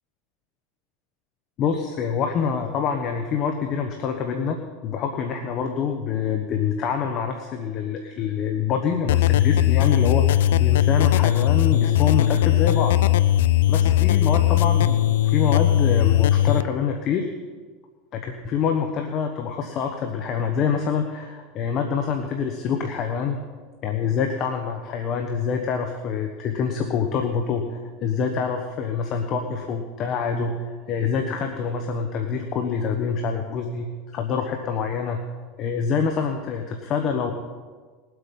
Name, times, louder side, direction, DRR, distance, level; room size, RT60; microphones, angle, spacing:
voice 1, 1.6-4.6 4.8-13.0 13.7-17.3 18.1-23.4 23.8-33.9 34.1-35.2 35.6-37.3, left 6 dB, 45° left, 4 dB, 1.2 m, -26 dB
sound 1, 9.1-16.6, left 13 dB, 85° left, 0.4 m, -19 dB
20.5 x 8.1 x 5.5 m, 1.5 s
supercardioid pair, 125°, 0 cm